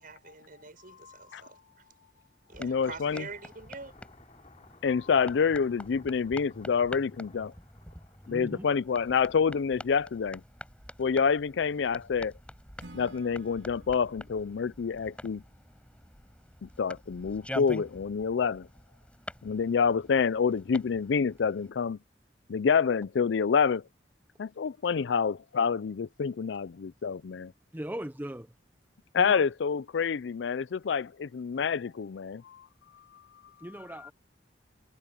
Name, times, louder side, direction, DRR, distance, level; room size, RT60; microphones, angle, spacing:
voice 1, 0.0-1.6 2.5-3.9, right 4 dB, 50° right, 5.8 m, -45 dB
voice 2, 1.0-1.4 2.6-3.2 4.8-7.5 8.3-10.4 11.0-12.3 12.9-15.4 16.6-18.7 19.4-22.0 22.5-23.8 24.4-27.5 29.1-32.6, left 6 dB, 75° left, 0.4 m, -27 dB
sound 1, 2.4-10.6, left 3 dB, 40° left, 3.6 m, -59 dB
sound 2, 2.5-21.7, left 1 dB, 5° left, 5.6 m, -47 dB
voice 3, 8.2-8.7 27.7-28.5 29.1-29.5 33.6-34.1, right 1 dB, 10° right, 0.7 m, -39 dB
Acoustic guitar / Strum, 12.8-16.0, right 1 dB, 80° right, 3.7 m, -54 dB
head